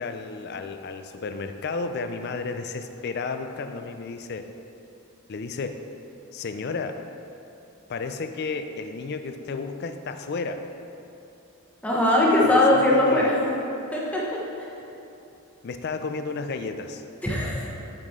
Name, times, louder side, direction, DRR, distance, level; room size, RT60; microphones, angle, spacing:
voice 1, 0.0-4.5 5.3-5.8 6.3-7.0 7.9-10.6 12.5-13.3 15.6-17.0, left 4 dB, 50° left, 8 dB, 0.4 m, -32 dB
voice 2, 11.8-13.4 13.9-14.2 17.2-17.6, left 1 dB, 5° left, -5 dB, 1.0 m, -20 dB
9.1 x 5.9 x 3.6 m, 2.9 s
head